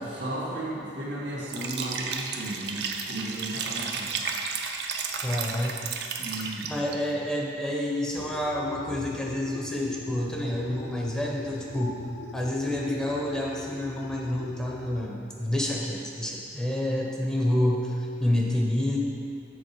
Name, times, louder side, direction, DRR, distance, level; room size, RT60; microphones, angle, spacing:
voice 1, 0.2-4.1 6.2-6.9, right 1 dB, 80° right, -5 dB, 1.9 m, -34 dB
Liquid, 1.5-6.9, right 5 dB, 65° right, 0.6 m, -33 dB
voice 2, 5.2-5.8 6.2-12.1 12.3-19.0, left 1 dB, 5° left, -2 dB, 0.6 m, -28 dB
sound 1, 8.2-15.1, left 4 dB, 75° left, 0.4 m, -42 dB
7.8 x 3.8 x 6.0 m, 2.4 s
head